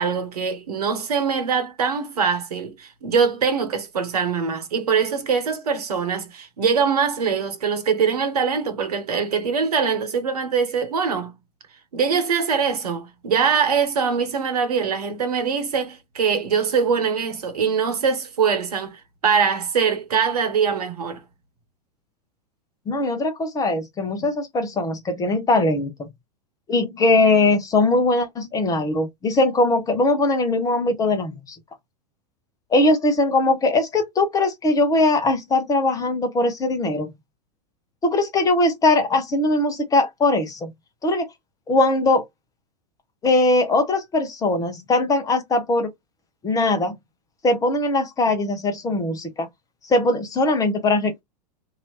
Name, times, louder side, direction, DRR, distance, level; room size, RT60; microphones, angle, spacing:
voice 1, 0.0-11.3 11.9-21.2, right 6 dB, 65° right, 1.1 m, -23 dB
voice 2, 22.9-26.1 26.7-31.6 32.7-37.1 38.0-40.7 41.0-41.3 41.7-42.2 43.2-45.9 46.4-47.0 47.4-49.5 49.9-51.2, left 2 dB, 15° left, 1.0 m, -20 dB
2.9 x 2.8 x 2.9 m
figure-of-eight pair, 95°, 21 cm